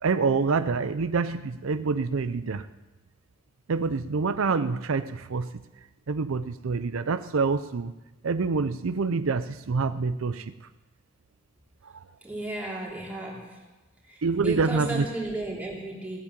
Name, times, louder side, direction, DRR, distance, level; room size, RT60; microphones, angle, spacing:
voice 1, 0.0-2.7 3.7-5.5 6.1-7.9 8.2-10.5 11.8-12.0 14.2-15.1, right 4 dB, 85° right, 12 dB, 0.5 m, -26 dB
voice 2, 12.2-13.7 14.0-16.2, right 2 dB, 10° right, -4 dB, 3.3 m, -34 dB
17.5 x 8.4 x 7.3 m, 1.0 s
head